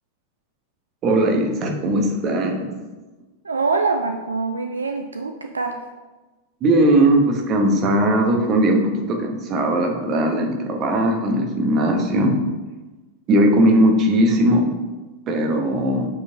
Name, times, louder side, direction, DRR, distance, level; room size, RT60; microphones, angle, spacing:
voice 1, 1.0-2.7 6.6-12.4 13.3-14.7 15.3-16.1, right 1 dB, 35° right, 2 dB, 1.1 m, -19 dB
voice 2, 3.4-5.8, right 4 dB, 75° right, 5 dB, 0.4 m, -24 dB
8.1 x 4.7 x 2.8 m, 1.2 s
figure-of-eight pair, 90°, 0 cm